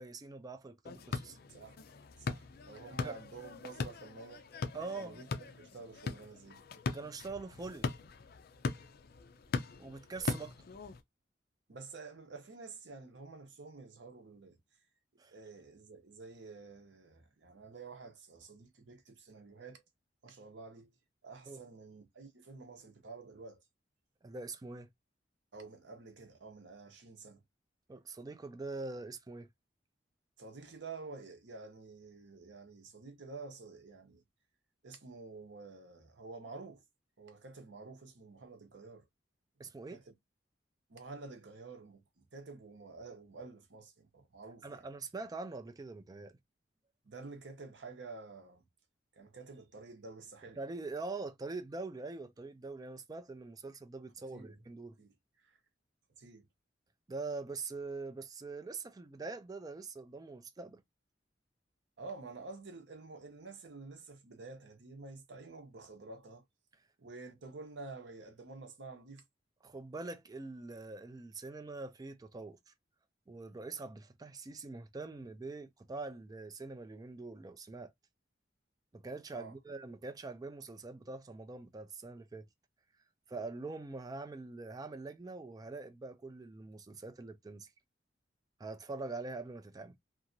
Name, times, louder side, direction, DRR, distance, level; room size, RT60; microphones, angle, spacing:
voice 1, 0.0-1.4 3.0-3.2 4.7-5.2 6.9-7.9 9.8-10.5 15.2-15.3 21.5-21.6 24.2-24.9 27.9-29.5 39.6-40.0 44.6-46.4 50.6-55.0 57.1-60.8 69.6-72.7 73.3-77.9 78.9-82.5 83.3-87.7 88.6-89.9, right 3 dB, 20° right, 0.3 m, -43 dB
sound 1, 0.8-11.0, left 4 dB, 55° left, 0.4 m, -40 dB
voice 2, 1.5-1.8 2.2-4.5 5.0-6.6 11.7-14.6 15.3-19.8 20.2-20.9 21.2-23.6 25.5-27.4 30.4-34.2 34.8-36.8 37.2-39.1 39.9-40.1 40.9-44.8 47.0-48.6 49.1-50.6 54.3-54.6 55.0-55.1 55.4-55.6 56.2-56.4 62.0-66.4 67.0-69.2 79.3-79.5, right 3 dB, 75° right, 0.8 m, -50 dB
2.8 x 2.3 x 2.6 m
head